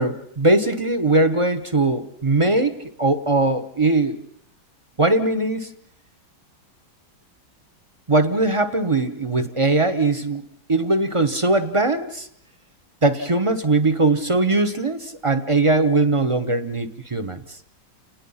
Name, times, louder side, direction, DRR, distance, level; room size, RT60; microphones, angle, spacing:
voice 1, 0.0-4.2 5.0-5.7 8.1-12.3 13.0-17.4, right 2 dB, 30° right, 11 dB, 0.6 m, -20 dB
30.0 x 19.5 x 5.7 m, 0.71 s
omnidirectional pair, 2.2 m